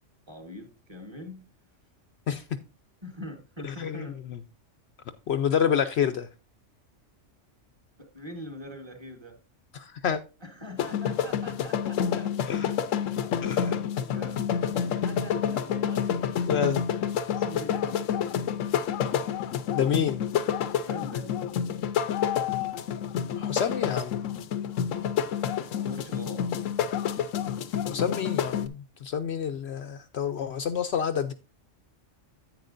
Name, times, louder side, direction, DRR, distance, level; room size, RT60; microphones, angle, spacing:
voice 1, 0.3-1.5 3.0-4.2 8.0-9.4 10.4-12.3 13.1-16.7 17.3-18.5 20.7-21.8 25.7-26.5, left 1 dB, 20° right, 1.5 m, -43 dB
voice 2, 3.6-4.4 5.3-6.3 9.7-10.2 12.5-12.7 13.4-13.6 16.5-16.8 19.7-20.3 23.4-24.3 27.9-31.3, left 8 dB, 65° left, 0.8 m, -28 dB
sound 1, 10.8-28.7, left 8 dB, 85° left, 1.0 m, -28 dB
10.5 x 8.7 x 2.5 m
omnidirectional pair, 1.3 m